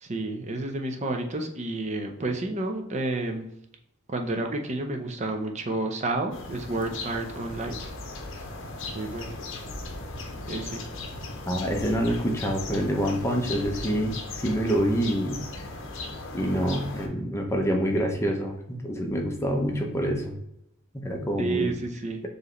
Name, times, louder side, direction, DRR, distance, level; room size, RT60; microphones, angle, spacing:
voice 1, 0.0-3.5 4.1-7.8 8.4-8.5 8.9-9.4 10.5-10.9 21.4-22.2, right 2 dB, 35° right, 4 dB, 0.6 m, -30 dB
sound 1, 6.3-17.1, left 2 dB, 65° left, 0.7 m, -37 dB
voice 2, 11.5-15.7 16.3-20.4 21.0-21.7, equal, 15° left, 1 dB, 0.6 m, -27 dB
4.6 x 3.2 x 3.0 m, 0.80 s
head